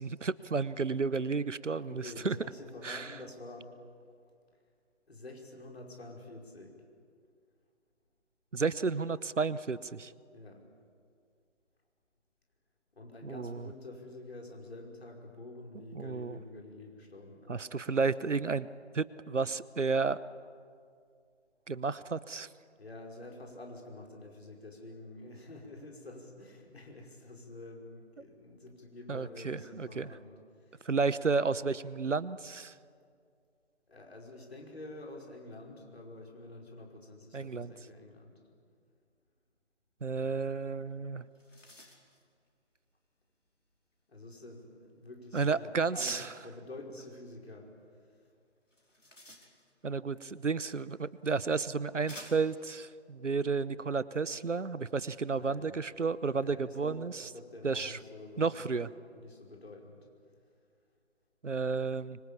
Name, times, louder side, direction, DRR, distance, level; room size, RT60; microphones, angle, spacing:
voice 1, 0.0-2.4 2.8-3.2 8.5-10.1 13.2-13.7 15.9-16.4 17.5-18.7 18.9-20.2 21.7-22.5 29.1-30.1 30.8-32.7 37.3-37.7 40.0-41.2 45.3-46.3 49.8-57.1 57.6-58.0 58.4-58.9 61.4-62.2, right 4 dB, 75° right, 18 dB, 1.0 m, -32 dB
voice 2, 1.8-3.7 5.1-6.8 10.3-10.6 13.0-17.7 22.8-30.3 30.6-30.9 33.9-38.4 44.1-47.7 55.3-55.8 56.4-58.8 59.1-60.1, left 2 dB, 55° left, 1 dB, 5.3 m, -48 dB
sound 1, 40.9-41.0 41.2-42.2 46.0-46.4 48.7-49.9 51.0-51.1 52.1-52.6, left 1 dB, 85° left, 4.8 m, -50 dB
25.0 x 24.5 x 8.6 m, 2.2 s
figure-of-eight pair, 150°, 37 cm